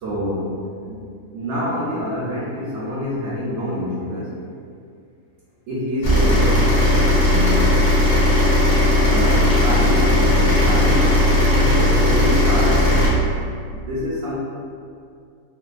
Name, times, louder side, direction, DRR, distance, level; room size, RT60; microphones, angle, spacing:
voice 1, 0.0-1.0 1.3-4.3 5.7-7.7 8.7-13.1 13.7-14.4, left 1 dB, 70° right, -7 dB, 0.7 m, -26 dB
sound 1, 6.0-13.1, left 1 dB, 80° left, 0.4 m, -16 dB
2.7 x 2.1 x 2.3 m, 2.3 s
omnidirectional pair, 1.6 m